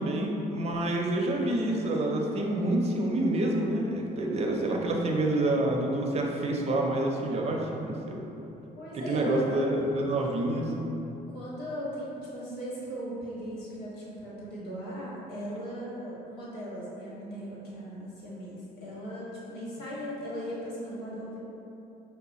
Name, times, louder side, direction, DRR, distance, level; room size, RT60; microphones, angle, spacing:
voice 1, 0.0-8.2 9.1-10.6, right 1 dB, 40° right, 0 dB, 0.6 m, -28 dB
voice 2, 4.1-4.7 8.8-9.6 11.3-21.4, equal, 80° left, -7 dB, 1.4 m, -38 dB
4.8 x 2.1 x 4.1 m, 2.9 s
cardioid pair, 110°, 17 cm